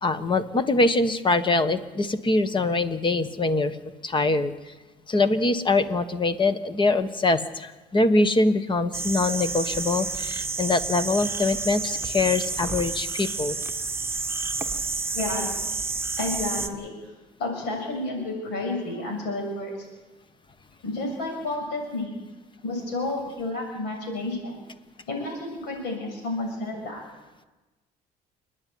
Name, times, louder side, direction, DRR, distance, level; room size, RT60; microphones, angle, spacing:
voice 1, 0.0-3.8 4.0-4.5 5.1-13.5, left 2 dB, 30° left, 12 dB, 1.3 m, -23 dB
sound 1, 8.9-16.7, right 4 dB, 15° right, 1.3 m, -30 dB
voice 2, 15.1-15.5 16.2-16.9 17.4-19.9 20.8-22.1 22.6-24.6 25.1-27.0, left 2 dB, 90° left, 1 dB, 7.4 m, -31 dB
28.5 x 9.9 x 9.4 m, 1.2 s
cardioid pair, 110°, 17 cm